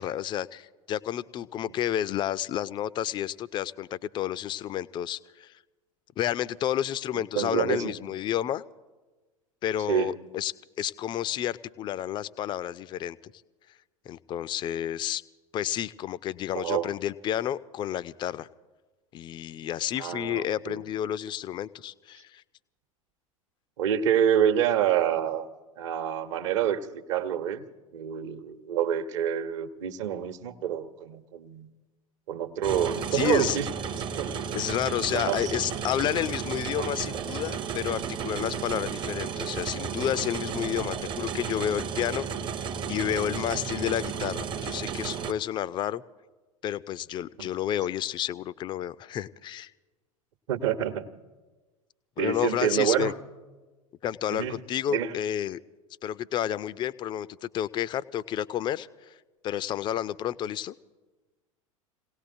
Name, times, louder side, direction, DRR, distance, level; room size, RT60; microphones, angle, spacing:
voice 1, 0.0-5.5 6.2-8.6 9.6-13.2 14.1-15.2 15.5-18.5 19.1-22.4 33.1-33.6 34.5-42.3 42.9-46.0 46.6-49.7 52.2-53.1 54.0-55.6 56.0-59.1 59.4-60.7, left 11 dB, 25° left, 19 dB, 0.4 m, -30 dB
voice 2, 7.3-7.9 9.9-10.1 16.5-16.9 20.0-20.8 23.8-25.4 25.8-27.6 27.9-31.7 32.3-33.7 34.2-34.4 35.1-35.5 36.8-36.9 38.7-38.8 47.4-47.5 50.5-51.0 52.2-53.1 54.3-54.6 54.9-55.1, right 9 dB, 55° right, 9 dB, 1.0 m, -27 dB
sound 1, 32.6-45.3, right 7 dB, 25° right, 0.7 m, -33 dB
29.0 x 17.5 x 2.6 m, 1.2 s
figure-of-eight pair, 80°, 18 cm